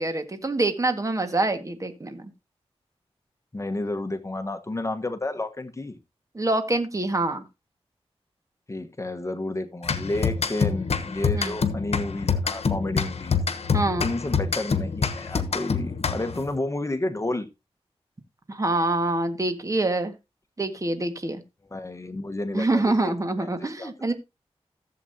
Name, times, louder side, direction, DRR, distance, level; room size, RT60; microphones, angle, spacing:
voice 1, 0.0-2.3 6.3-7.4 11.3-11.5 13.7-14.1 18.5-20.1 20.6-21.4 22.5-24.1, right 2 dB, 30° right, 1.7 m, -25 dB
voice 2, 3.5-6.0 8.7-13.4 14.0-17.5 21.7-24.1, left 2 dB, 30° left, 1.2 m, -31 dB
sound 1, 9.8-16.5, left 5 dB, 75° left, 1.1 m, -26 dB
15.0 x 7.7 x 2.8 m
wide cardioid pair, 95°, 11 cm